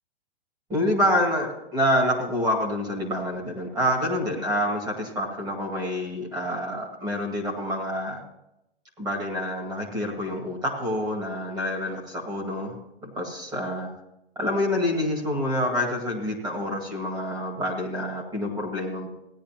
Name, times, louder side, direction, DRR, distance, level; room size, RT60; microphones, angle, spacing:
voice 1, 0.7-8.2 9.0-12.7 13.0-13.9 14.4-19.1, left 1 dB, 10° right, 0 dB, 2.1 m, -27 dB
17.0 x 10.5 x 3.0 m, 0.89 s
hypercardioid pair, 155°, 33 cm